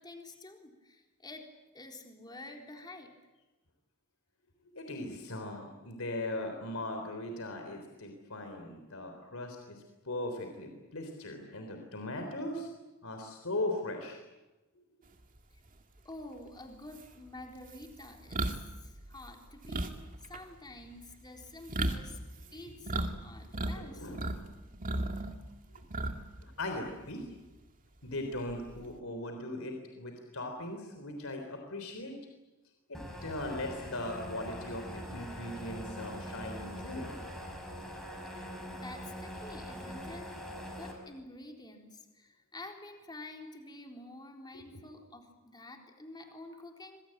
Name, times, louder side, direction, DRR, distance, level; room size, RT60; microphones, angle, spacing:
voice 1, 0.0-1.4 1.7-3.1 16.0-19.9 20.2-22.2 22.5-24.1 38.7-40.4 40.7-47.0, left 2 dB, 20° left, 2 dB, 3.8 m, -49 dB
voice 2, 4.7-12.7 13.0-14.2 23.8-24.2 26.4-27.3 28.0-32.1 32.9-37.1 44.5-44.8, left 1 dB, 75° left, 4 dB, 3.8 m, -39 dB
sound 1, 16.4-16.5 16.9-23.1 23.4-24.4 24.7-26.4 26.7-26.9 28.3-28.9, right 2 dB, 40° right, 2.2 m, -35 dB
sound 2, 32.9-40.9, equal, ahead, 5.7 m, -43 dB
26.5 x 22.5 x 8.9 m, 1.1 s
head